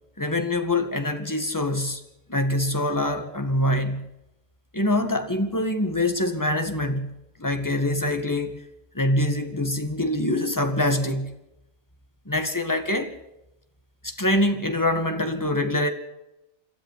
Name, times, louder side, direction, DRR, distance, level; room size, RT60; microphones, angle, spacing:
voice 1, 0.2-2.0 2.3-4.1 4.7-7.1 7.4-8.6 8.9-11.3 12.3-13.1 14.0-15.9, left 1 dB, 15° left, 2.0 m, -24 dB
27.0 x 13.0 x 8.0 m
omnidirectional pair, 1.4 m